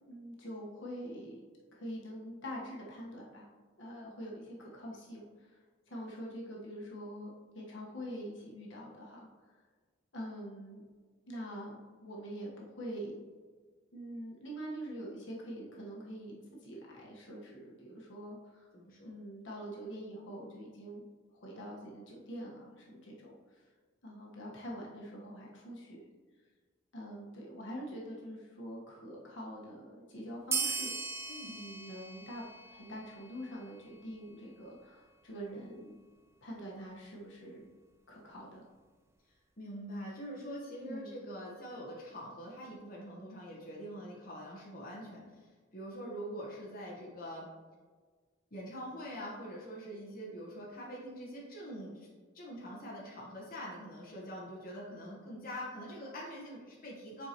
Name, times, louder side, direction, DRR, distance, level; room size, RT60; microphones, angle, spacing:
voice 1, 0.1-1.4 1.7-3.5 3.8-5.6 5.9-9.6 10.1-10.8 11.3-13.2 13.9-18.7 19.0-21.0 21.3-23.6 24.0-26.1 26.9-31.0 31.4-35.9 36.4-37.7 38.1-38.6 40.8-41.1, equal, 60° left, -3 dB, 1.3 m, -45 dB
voice 2, 18.7-19.1 31.3-31.5 39.6-45.5 45.7-47.5 48.5-52.1 52.3-57.3, equal, 45° left, -4 dB, 1.2 m, -44 dB
sound 1, 30.5-33.5, right 4 dB, 15° right, 0.4 m, -38 dB
7.7 x 4.7 x 2.9 m, 1.5 s
head